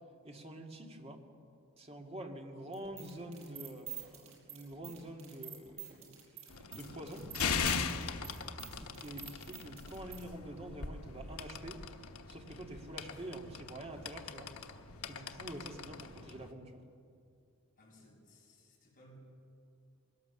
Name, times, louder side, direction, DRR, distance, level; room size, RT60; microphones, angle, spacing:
voice 1, 0.2-1.2 1.8-7.3 8.8-11.8 12.3-14.5 15.0-16.8, right 1 dB, 30° right, 2 dB, 2.0 m, -47 dB
sound 1, 2.7-10.2, right 10 dB, 70° right, 5.0 m, -48 dB
sound 2, 6.5-16.5, left 5 dB, 90° left, 1.1 m, -40 dB
voice 2, 8.0-8.3 17.8-19.2, equal, 40° left, -2 dB, 6.4 m, -60 dB
22.0 x 17.5 x 7.1 m, 2.4 s
head